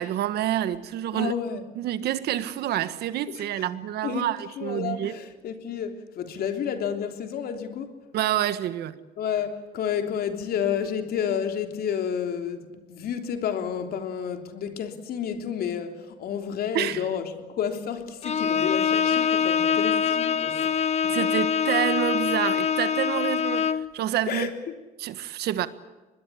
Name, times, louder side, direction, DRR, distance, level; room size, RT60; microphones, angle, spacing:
voice 1, 0.0-1.3 1.8-5.2 8.1-9.0 16.7-17.0 21.1-24.5 25.0-25.7, right 12 dB, 75° right, 1.5 m, -28 dB
voice 2, 1.1-1.6 3.3-3.7 4.0-8.0 9.2-21.3 23.2-23.3 24.3-24.7, left 8 dB, 65° left, 3.3 m, -31 dB
Bowed string instrument, 18.2-23.9, left 7 dB, 40° left, 1.1 m, -24 dB
25.0 x 21.0 x 8.5 m
cardioid pair, 110°, 17 cm